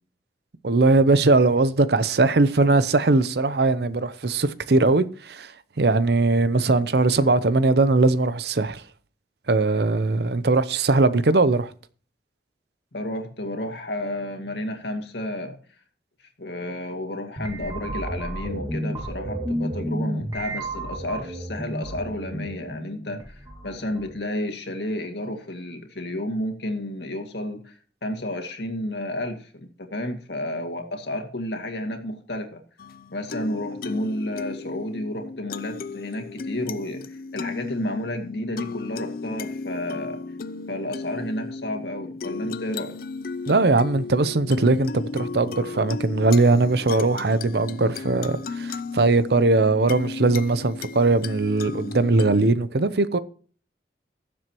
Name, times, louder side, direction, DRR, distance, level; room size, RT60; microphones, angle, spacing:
voice 1, 0.6-5.5 5.8-8.8 9.5-11.7 43.5-53.2, right 3 dB, 65° right, 0.7 m, -20 dB
voice 2, 12.9-15.6 16.4-32.6 33.1-40.2 40.7-42.9, left 1 dB, 75° left, 2.1 m, -31 dB
sound 1, 17.4-24.2, right 1 dB, 20° right, 2.1 m, -32 dB
sound 2, 32.8-52.5, left 4 dB, 55° left, 0.5 m, -35 dB
18.5 x 7.7 x 3.0 m
head